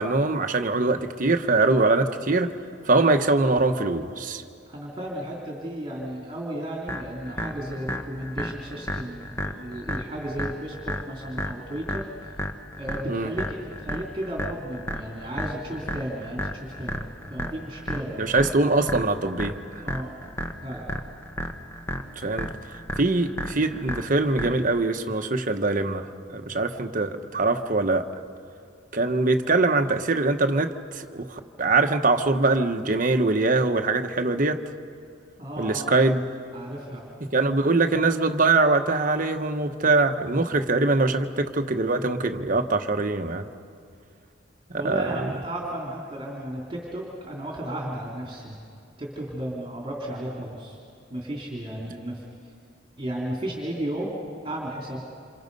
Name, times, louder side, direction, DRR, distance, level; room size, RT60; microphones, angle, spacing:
voice 1, 0.0-2.5 2.8-4.4 13.1-13.3 18.2-19.6 22.2-22.5 23.0-28.1 28.9-34.6 35.6-36.2 37.2-43.5 44.7-45.3, right 3 dB, 40° right, 6 dB, 1.1 m, -23 dB
voice 2, 4.7-12.3 12.8-18.3 19.8-20.1 20.6-20.9 35.4-36.0 36.5-37.1 44.7-48.6 49.0-50.8 51.1-52.2 53.0-54.2 54.4-55.0, right 1 dB, 25° right, -2 dB, 2.9 m, -34 dB
sound 1, 6.9-24.9, equal, 10° left, 1.2 m, -33 dB
28.0 x 27.0 x 5.4 m, 2.4 s
head